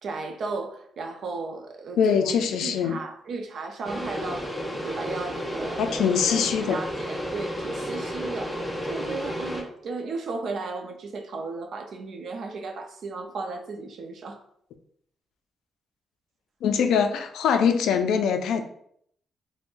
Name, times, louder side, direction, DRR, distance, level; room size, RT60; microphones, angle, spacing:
voice 1, 0.0-2.2 2.6-4.5 4.8-5.9 6.3-6.5 6.7-14.4, right 3 dB, 65° right, 0.4 m, -35 dB
voice 2, 2.0-3.0 5.8-6.8 16.6-18.6, left 7 dB, 90° left, 0.3 m, -23 dB
sound 1, 3.8-9.6, equal, 5° left, 0.5 m, -32 dB
3.6 x 2.0 x 2.5 m
cardioid pair, 110°, 0 cm